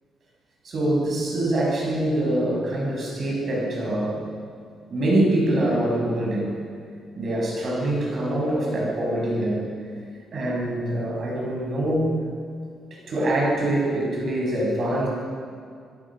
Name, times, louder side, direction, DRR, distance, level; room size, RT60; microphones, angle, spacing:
voice 1, 0.6-4.2 4.9-6.6 7.2-9.7 10.3-12.2 12.9-15.1, right 1 dB, 40° right, -3 dB, 7.2 m, -24 dB
26.5 x 17.0 x 6.5 m, 2.2 s
cardioid pair, 165°, 0 cm